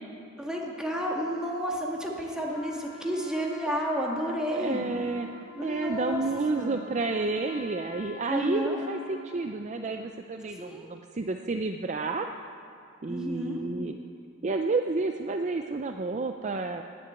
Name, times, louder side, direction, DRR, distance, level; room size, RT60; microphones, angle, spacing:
voice 1, 0.4-4.8 5.6-6.2 6.6-6.8 8.3-8.8 10.5-10.9 13.1-13.6, equal, 5° right, -2 dB, 1.9 m, -31 dB
Trumpet, 2.5-9.5, equal, 65° left, 1.5 m, -48 dB
voice 2, 4.5-5.3 5.6-12.3 13.0-13.9 14.4-16.8, right 3 dB, 35° right, 5 dB, 0.5 m, -30 dB
19.0 x 7.7 x 8.1 m, 2.4 s
head